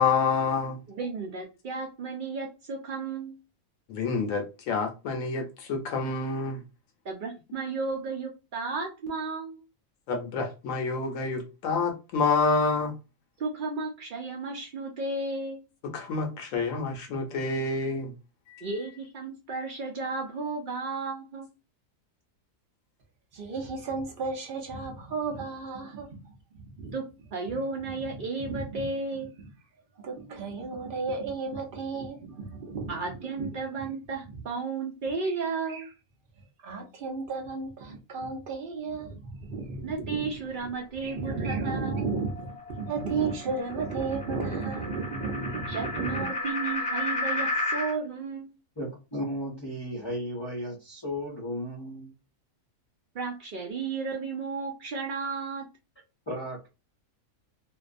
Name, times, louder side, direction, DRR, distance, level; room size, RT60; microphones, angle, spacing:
voice 1, 0.0-0.8 3.9-6.6 10.1-12.9 15.8-18.1 18.5-18.6, left 4 dB, 75° left, 0.9 m, -28 dB
voice 2, 0.9-3.4 7.0-9.6 13.4-15.6 18.6-21.5 26.8-27.0 27.3-29.3 32.9-35.9 39.8-42.0 45.7-48.5 53.1-55.6, right 4 dB, 90° right, 0.4 m, -33 dB
voice 3, 23.3-27.0 27.5-27.6 27.8-28.1 28.4-28.9 30.0-33.6 35.2-35.3 35.7-35.9 36.6-40.5 41.0-46.3, right 4 dB, 50° right, 0.7 m, -34 dB
sound 1, 41.2-47.9, left 2 dB, 5° left, 0.9 m, -34 dB
voice 4, 48.8-52.1 56.3-56.7, equal, 25° left, 0.6 m, -35 dB
2.5 x 2.2 x 2.4 m
omnidirectional pair, 1.4 m